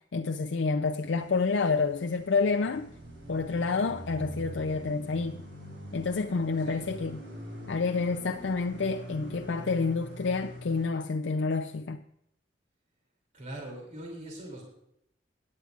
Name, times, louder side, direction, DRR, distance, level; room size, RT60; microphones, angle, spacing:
voice 1, 0.1-2.9 3.3-5.4 5.9-7.2 7.7-12.0, left 4 dB, 80° left, 0.5 m, -28 dB
sound 1, 1.0-10.9, equal, 80° right, 5.0 m, -44 dB
voice 2, 13.3-14.6, right 1 dB, 40° right, 2.9 m, -41 dB
17.5 x 9.7 x 2.5 m
head